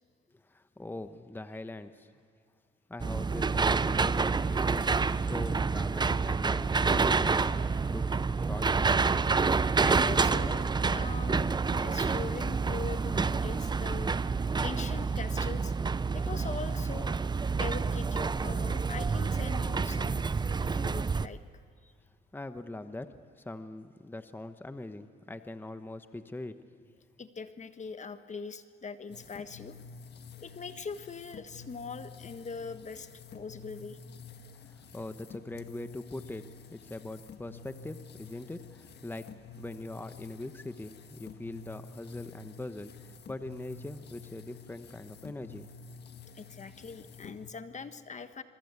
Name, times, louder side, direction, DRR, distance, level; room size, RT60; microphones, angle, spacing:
voice 1, 0.3-2.1 2.9-8.1 8.3-9.1 22.3-27.0 34.6-36.4 36.7-39.3 39.6-45.7, left 2 dB, 10° left, 9 dB, 1.2 m, -42 dB
sound 1, 3.0-21.3, right 4 dB, 20° right, 0.6 m, -28 dB
voice 2, 9.8-14.3 14.6-15.7 16.1-17.2 17.6-20.3 20.6-21.9 27.2-29.8 30.4-34.0 46.3-48.4, left 5 dB, 35° left, 10 dB, 1.3 m, -42 dB
sound 2, 29.1-47.5, left 5 dB, 60° left, 1.6 m, -49 dB
26.0 x 23.0 x 8.3 m, 2.4 s
cardioid pair, 90°, 20 cm